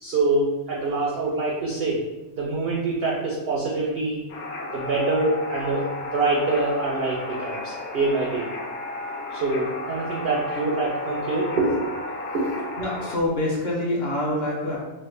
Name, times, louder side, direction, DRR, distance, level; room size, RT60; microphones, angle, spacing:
voice 1, 0.0-2.0 2.3-4.2 4.7-8.5 9.3-11.8 12.3-12.5, right 3 dB, 75° right, -4 dB, 0.5 m, -25 dB
sound 1, 4.3-13.2, left 2 dB, 80° left, 1.1 m, -33 dB
voice 2, 12.8-14.8, left 1 dB, 50° left, -4 dB, 0.8 m, -26 dB
3.2 x 2.0 x 3.1 m, 1.1 s
omnidirectional pair, 1.6 m